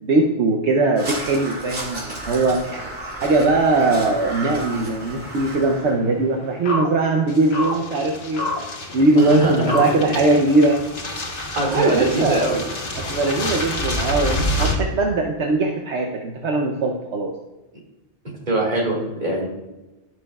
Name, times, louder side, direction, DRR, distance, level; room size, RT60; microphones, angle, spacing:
voice 1, 0.0-2.6 3.2-8.5 8.9-10.8 11.6-12.4 13.0-17.3, right 2 dB, 70° right, 1 dB, 1.1 m, -20 dB
Crow, 1.0-6.0, right 1 dB, 55° right, 2.5 m, -33 dB
sound 1, 5.2-10.5, left 2 dB, 60° left, 1.2 m, -30 dB
sound 2, 7.3-14.8, left 1 dB, 80° left, 1.7 m, -28 dB
voice 2, 9.2-9.8 11.6-12.6 13.2-13.3 18.5-19.5, right 1 dB, 40° right, -2 dB, 2.5 m, -22 dB
16.0 x 6.2 x 2.3 m, 1.0 s
omnidirectional pair, 1.2 m